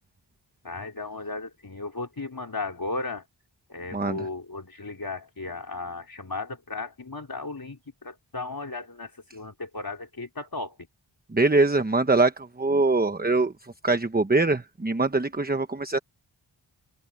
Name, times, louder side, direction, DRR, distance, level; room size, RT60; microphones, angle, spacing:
voice 1, 0.6-3.2 3.7-10.8, left 3 dB, 45° left, 3.7 m, -35 dB
voice 2, 3.9-4.3 11.3-13.5 13.8-16.0, right 3 dB, 20° right, 1.0 m, -23 dB
wide cardioid pair, 60°, 48 cm